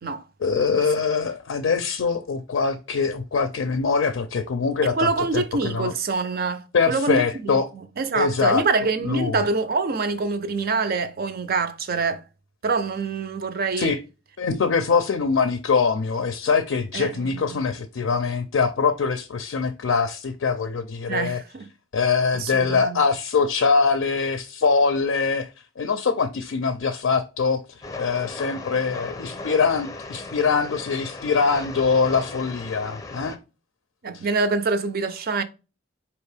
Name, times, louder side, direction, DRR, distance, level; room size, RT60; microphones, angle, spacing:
voice 1, 0.4-5.9 6.7-7.7 8.1-8.6 9.0-9.5 13.8-14.0 14.4-21.4 21.9-25.5 25.8-33.4 34.1-34.3, left 5 dB, 70° left, 0.4 m, -23 dB
voice 2, 4.9-7.5 8.0-12.2 12.6-13.9 16.9-17.6 21.1-21.7 22.3-23.0 34.0-35.4, right 4 dB, 50° right, 0.5 m, -25 dB
Train, 27.8-33.4, left 3 dB, 20° left, 0.6 m, -37 dB
4.3 x 2.9 x 3.3 m
head